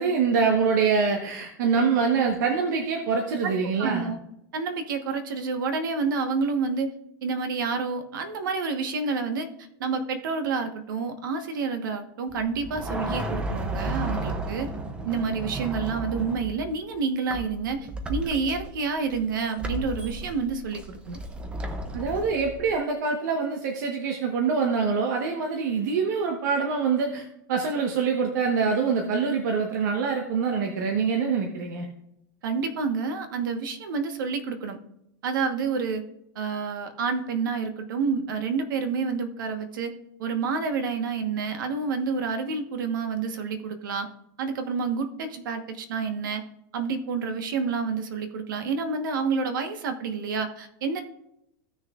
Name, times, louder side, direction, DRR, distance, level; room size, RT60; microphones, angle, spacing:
voice 1, 0.0-4.1 21.9-31.8, right 5 dB, 70° right, 1 dB, 1.3 m, -25 dB
voice 2, 3.4-4.2 4.5-6.9 7.2-9.5 9.8-14.7 15.0-21.2 32.4-34.8 35.2-36.0 36.3-39.9 40.2-44.1 44.4-46.4 46.7-51.0, right 5 dB, 85° right, 7 dB, 1.3 m, -29 dB
sound 1, 12.3-16.9 17.3-22.8, right 1 dB, 10° right, 0.6 m, -34 dB
16.0 x 6.4 x 2.5 m, 0.79 s
supercardioid pair, 165°, 10 cm